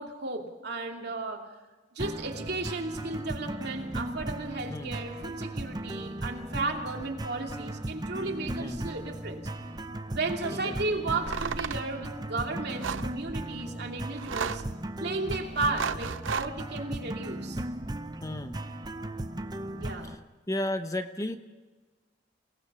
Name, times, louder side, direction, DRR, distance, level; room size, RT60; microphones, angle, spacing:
voice 1, 0.0-1.5 1.9-9.5 10.1-14.6 15.0-17.6 19.7-20.2, right 3 dB, 60° right, 2 dB, 2.7 m, -34 dB
sound 1, 2.0-20.2, right 1 dB, 20° right, 0.8 m, -37 dB
sound 2, 11.3-11.8 12.8-13.1 14.2-14.7 15.5-16.5, right 6 dB, 85° right, 0.6 m, -33 dB
voice 2, 18.2-18.6 20.0-20.2 20.5-21.4, left 1 dB, 15° left, 8 dB, 0.9 m, -33 dB
28.5 x 18.0 x 6.1 m, 1.3 s
head